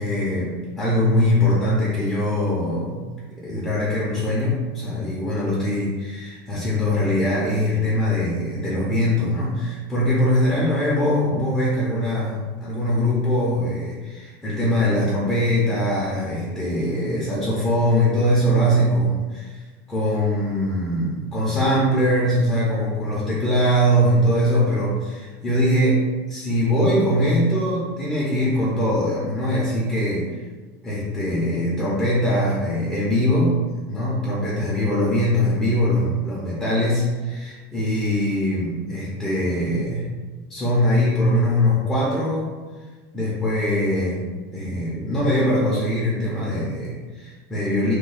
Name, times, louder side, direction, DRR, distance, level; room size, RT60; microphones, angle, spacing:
voice 1, 0.0-3.0 3.4-30.4 30.8-33.6 33.9-40.1 40.5-42.6 43.1-44.2 44.5-47.9, equal, 5° left, -8 dB, 0.5 m, -22 dB
2.9 x 2.2 x 3.9 m, 1.3 s
cardioid pair, 175°, 9 cm